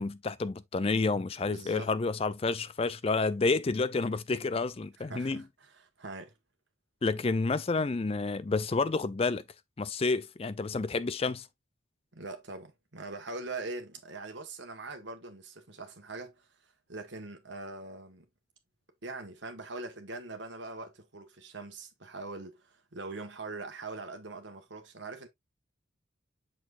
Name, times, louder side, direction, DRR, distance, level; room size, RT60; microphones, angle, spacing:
voice 1, 0.0-5.4 7.0-9.4 9.8-11.5, left 3 dB, 30° left, 0.4 m, -29 dB
voice 2, 1.5-1.9 5.0-6.3 12.1-16.5 16.9-18.2 19.0-25.3, right 3 dB, 60° right, 1.5 m, -42 dB
6.4 x 6.0 x 2.5 m
head